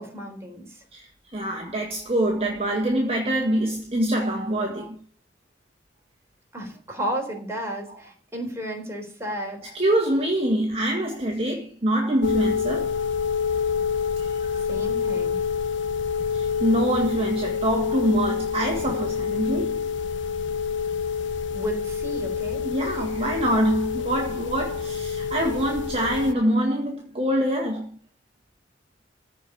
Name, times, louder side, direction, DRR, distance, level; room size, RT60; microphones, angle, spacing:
voice 1, 0.0-0.8 6.5-9.7 14.5-15.4 21.5-22.6, right 1 dB, 15° right, 4.0 m, -33 dB
voice 2, 0.9-5.0 9.7-13.0 14.2-14.6 16.3-19.8 22.6-27.9, right 1 dB, 30° right, 1.9 m, -25 dB
sound 1, 12.2-26.3, left 6 dB, 80° left, 0.9 m, -27 dB
15.0 x 5.1 x 8.6 m
head